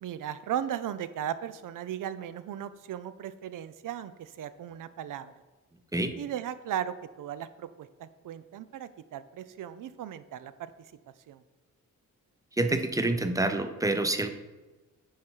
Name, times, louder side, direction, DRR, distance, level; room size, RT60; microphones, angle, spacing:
voice 1, 0.0-5.3 6.2-10.7 11.3-11.4, right 10 dB, 70° right, 13 dB, 0.6 m, -37 dB
voice 2, 12.6-14.3, right 2 dB, 10° right, 7 dB, 0.6 m, -27 dB
9.3 x 4.9 x 4.5 m, 1.2 s
wide cardioid pair, 140°, 33 cm